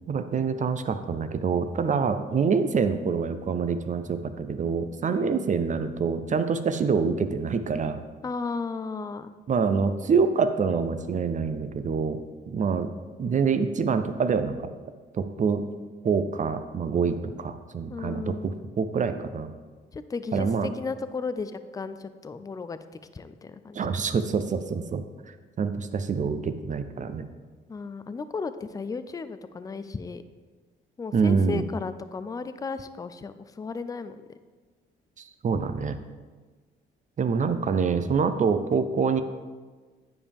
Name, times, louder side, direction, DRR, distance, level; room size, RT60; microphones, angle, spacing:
voice 1, 0.1-8.0 9.5-12.2 12.5-12.9 13.2-14.7 15.1-15.7 16.0-19.5 20.3-20.7 23.7-25.0 25.6-27.3 31.1-31.6 35.4-36.0 37.2-39.2, right 5 dB, 40° right, 10 dB, 0.5 m, -26 dB
voice 2, 5.1-5.4 8.2-9.3 17.9-18.5 19.9-23.8 27.7-30.2 31.0-34.4, left 4 dB, 20° left, 12 dB, 0.4 m, -35 dB
9.7 x 5.1 x 3.5 m, 1.4 s
cardioid pair, 90°, 20 cm